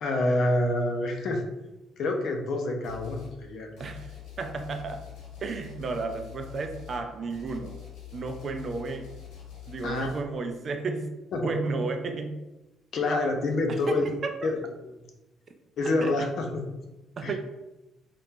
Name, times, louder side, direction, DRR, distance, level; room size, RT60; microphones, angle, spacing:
voice 1, 0.0-1.4 2.0-3.7 9.8-10.1 11.3-11.5 12.9-14.1 14.4-14.5 14.8-14.9 15.8-16.6 17.2-17.3, left 2 dB, 65° left, 3 dB, 0.6 m, -27 dB
sound 1, 2.8-3.4 3.8-10.2, left 7 dB, 90° left, 1.2 m, -44 dB
voice 2, 3.8-5.0 5.4-7.7 8.1-9.1 9.7-11.1 11.4-12.4 13.7-14.5 16.0-16.1 17.2-17.4, right 3 dB, 45° right, 6 dB, 0.4 m, -33 dB
2.8 x 2.5 x 3.6 m, 1.0 s
cardioid pair, 100°, 0 cm